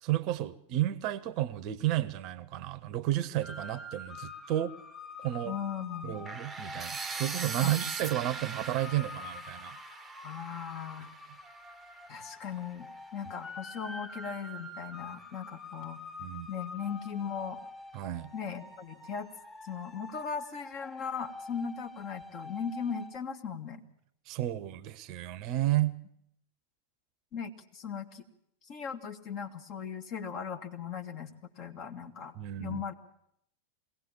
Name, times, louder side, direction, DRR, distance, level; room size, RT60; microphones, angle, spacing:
voice 1, 0.0-4.7 5.2-5.6 6.0-9.8 16.2-16.5 17.9-18.3 24.3-26.0 32.4-32.8, right 14 dB, 40° right, 19 dB, 0.8 m, -32 dB
sound 1, 3.4-23.2, left 2 dB, 15° left, 2.7 m, -46 dB
voice 2, 5.4-6.3 7.6-7.7 10.2-11.1 12.1-16.0 16.5-17.6 18.3-19.3 19.6-23.8 27.3-28.2 28.7-32.9, left 7 dB, 40° left, 5 dB, 2.0 m, -38 dB
sound 2, 6.3-12.2, right 4 dB, 15° right, 0.9 m, -41 dB
22.5 x 17.0 x 7.4 m, 0.74 s
figure-of-eight pair, 90°, 0 cm